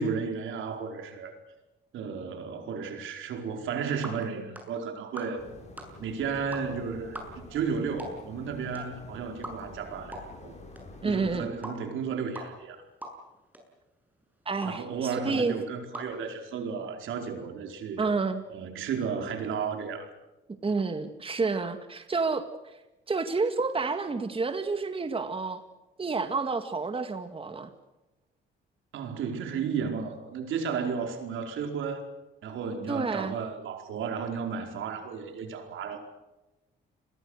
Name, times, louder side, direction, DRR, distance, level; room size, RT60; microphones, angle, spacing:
voice 1, 0.0-1.3 1.9-5.4 6.0-7.2 7.5-10.6 11.0-12.8 14.6-18.1 18.5-20.1 28.9-32.1 32.4-36.0, right 6 dB, 80° right, 4 dB, 4.8 m, -33 dB
sound 1, 3.6-16.9, equal, 10° right, 7.3 m, -46 dB
sound 2, 5.4-11.5, left 2 dB, 35° left, 7.6 m, -48 dB
voice 2, 11.0-11.5 14.5-15.6 18.0-18.4 20.6-22.7 23.1-25.6 26.0-27.7 32.9-33.3, right 4 dB, 25° right, 8 dB, 2.0 m, -29 dB
29.5 x 22.0 x 6.6 m, 1.0 s
cardioid pair, 90°, 20 cm